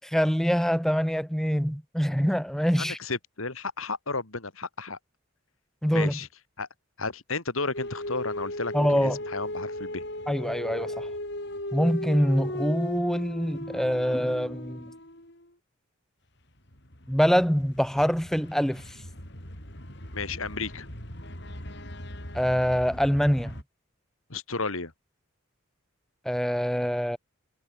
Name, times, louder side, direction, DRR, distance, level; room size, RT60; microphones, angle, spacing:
voice 1, 0.1-3.0 5.8-6.2 8.7-9.2 10.3-11.1 11.7-14.9 17.1-19.0 22.3-23.5 26.2-27.2, equal, ahead, 1.3 m, -25 dB
voice 2, 2.8-5.0 5.9-6.3 6.6-6.7 7.0-10.0 20.1-20.9 24.3-24.9, left 3 dB, 80° left, 3.3 m, -33 dB
sound 1, 7.7-15.5 16.7-23.6, left 1 dB, 55° left, 7.8 m, -37 dB
head